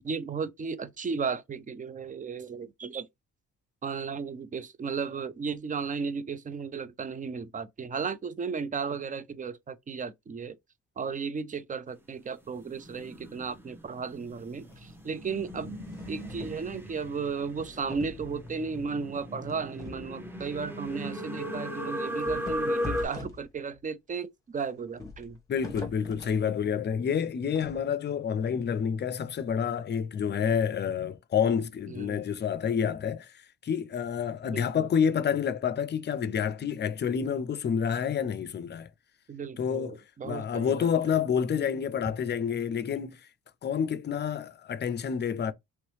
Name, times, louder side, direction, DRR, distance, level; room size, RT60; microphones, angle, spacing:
voice 1, 0.0-3.1 3.8-10.6 11.0-15.7 16.1-25.4 31.9-32.2 34.4-34.9 39.3-40.9, right 5 dB, 25° right, 0.5 m, -35 dB
sound 1, 12.6-23.0, equal, 5° right, 0.9 m, -37 dB
sound 2, 14.3-14.9 15.3-16.7 17.4-18.6 19.4-20.1 20.5-20.6 21.0-21.1 22.1-23.8 24.9-26.4 27.5-27.8, left 3 dB, 10° left, 1.2 m, -43 dB
voice 2, 25.5-33.3 33.6-38.9 39.6-43.2 43.6-45.5, left 7 dB, 35° left, 0.5 m, -28 dB
3.1 x 2.9 x 3.2 m
cardioid pair, 90°, 30 cm